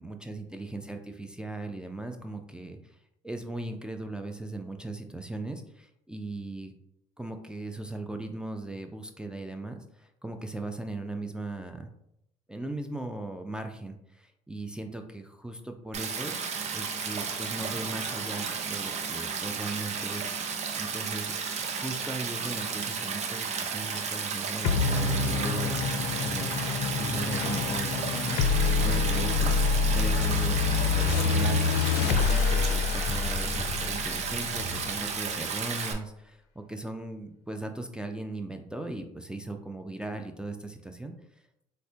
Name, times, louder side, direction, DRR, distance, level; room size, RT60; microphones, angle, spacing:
voice 1, 0.0-3.0 3.2-6.7 7.2-11.9 12.5-16.3 16.7-20.3 20.8-21.3 21.7-30.6 30.9-41.1, right 2 dB, 5° right, 4 dB, 0.3 m, -38 dB
Stream, 15.9-35.9, right 5 dB, 45° right, 0.6 m, -33 dB
sound 1, 24.6-35.4, left 5 dB, 70° left, 0.4 m, -27 dB
4.2 x 2.1 x 2.7 m, 0.78 s
supercardioid pair, 80°, 16 cm